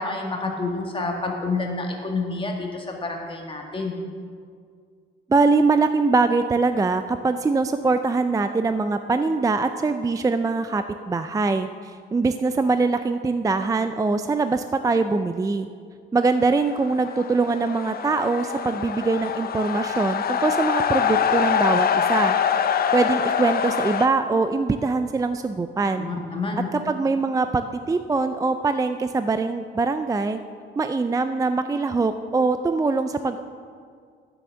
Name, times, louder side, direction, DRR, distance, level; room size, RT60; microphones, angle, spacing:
voice 1, 0.0-3.9 26.0-26.7, left 3 dB, 25° left, 0 dB, 1.9 m, -28 dB
voice 2, 5.3-15.7 16.1-22.3 22.9-26.1 26.7-30.4 30.8-33.4, right 3 dB, 15° right, 9 dB, 0.4 m, -23 dB
sound 1, 16.4-24.1, left 8 dB, 50° left, 0.6 m, -24 dB
9.8 x 7.0 x 7.4 m, 2.1 s
cardioid pair, 90°, 20 cm